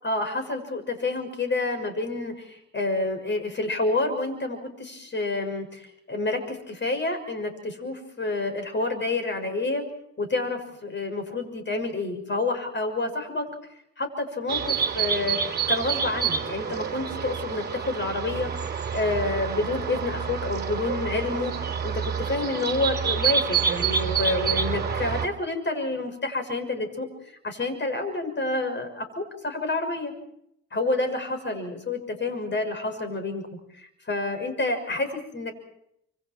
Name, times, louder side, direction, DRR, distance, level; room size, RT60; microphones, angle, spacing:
voice 1, 0.0-9.8 10.2-13.5 14.0-15.4 15.7-18.5 18.9-27.1 27.4-30.1 30.7-33.5 33.7-35.5, left 2 dB, 40° left, 6 dB, 6.2 m, -28 dB
sound 1, 14.5-25.3, right 7 dB, 35° right, 3.2 m, -28 dB
29.0 x 26.5 x 4.6 m, 0.76 s
cardioid pair, 90°, 30 cm